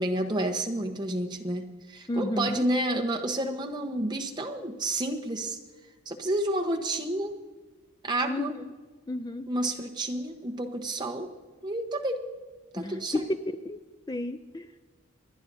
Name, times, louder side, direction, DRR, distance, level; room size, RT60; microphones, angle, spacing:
voice 1, 0.0-5.6 6.1-7.4 8.0-8.5 9.5-11.3 11.6-12.3 12.7-13.2, right 1 dB, 20° right, 2 dB, 1.1 m, -30 dB
voice 2, 2.1-2.6 8.3-8.7 9.1-9.5 12.7-13.8 14.1-14.7, left 1 dB, 20° left, 9 dB, 0.4 m, -32 dB
28.5 x 10.5 x 2.7 m, 1.4 s
head